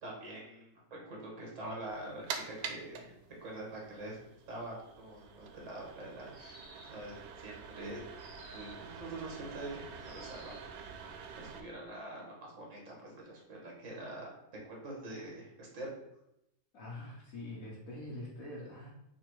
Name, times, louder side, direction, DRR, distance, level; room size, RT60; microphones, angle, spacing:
voice 1, 0.0-3.1 3.4-4.2 4.5-8.0 8.5-10.6 11.4-14.3 14.6-15.9, right 1 dB, 60° right, -2 dB, 1.6 m, -45 dB
sound 1, 1.9-11.6, right 6 dB, 90° right, 1.1 m, -47 dB
sound 2, 6.3-7.1 8.2-8.9 10.0-10.7, equal, 15° right, 1.5 m, -55 dB
voice 2, 16.7-18.9, left 1 dB, 70° left, -5 dB, 1.3 m, -44 dB
4.2 x 2.8 x 4.5 m, 0.84 s
omnidirectional pair, 1.5 m